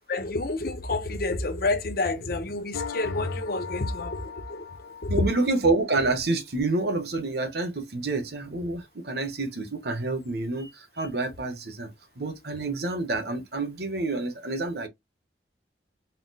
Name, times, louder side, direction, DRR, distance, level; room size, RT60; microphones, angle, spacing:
voice 1, 0.1-4.7 5.0-5.1, left 2 dB, 55° left, 0.8 m, -29 dB
sound 1, 2.7-6.1, left 6 dB, 85° left, 0.4 m, -39 dB
voice 2, 5.1-11.9 12.2-14.9, right 3 dB, 60° right, 1.0 m, -28 dB
4.2 x 2.1 x 4.0 m
head